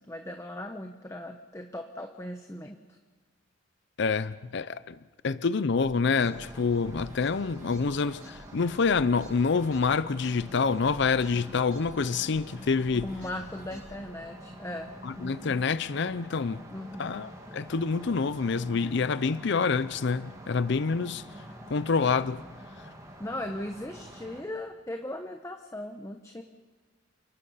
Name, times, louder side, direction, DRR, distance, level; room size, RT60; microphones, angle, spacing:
voice 1, 0.0-3.0 13.0-15.6 16.7-17.1 23.2-26.4, left 1 dB, 15° left, 0.9 m, -38 dB
voice 2, 4.0-5.0 5.2-13.1 15.0-16.6 17.0-21.2 21.7-22.4, left 5 dB, 60° left, 0.5 m, -27 dB
sound 1, 5.8-14.0, equal, 35° right, 5.6 m, -49 dB
sound 2, 6.0-24.4, equal, 15° right, 2.6 m, -47 dB
29.5 x 18.0 x 5.6 m
head